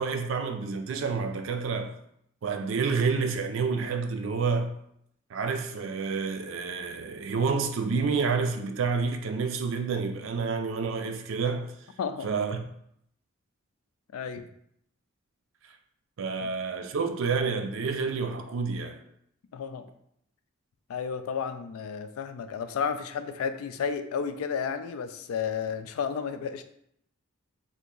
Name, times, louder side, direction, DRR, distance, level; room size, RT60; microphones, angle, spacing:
voice 1, 0.0-2.0 2.4-4.8 5.3-11.7 12.2-12.6 16.2-19.0, right 5 dB, 60° right, 0.4 m, -29 dB
voice 2, 14.1-14.5 16.4-16.5 19.5-19.9 20.9-26.6, left 6 dB, 80° left, 0.3 m, -32 dB
2.8 x 2.5 x 3.7 m
head